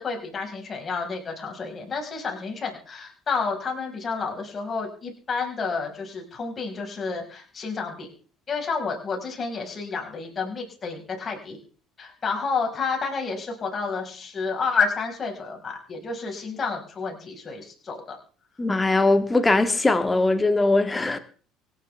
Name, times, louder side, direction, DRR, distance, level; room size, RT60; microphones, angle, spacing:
voice 1, 0.0-8.1 8.5-11.6 12.0-18.2, left 4 dB, 35° left, 5.3 m, -30 dB
voice 2, 18.6-21.2, left 2 dB, 15° left, 1.8 m, -21 dB
24.0 x 9.8 x 3.5 m
figure-of-eight pair, 60°, 0 cm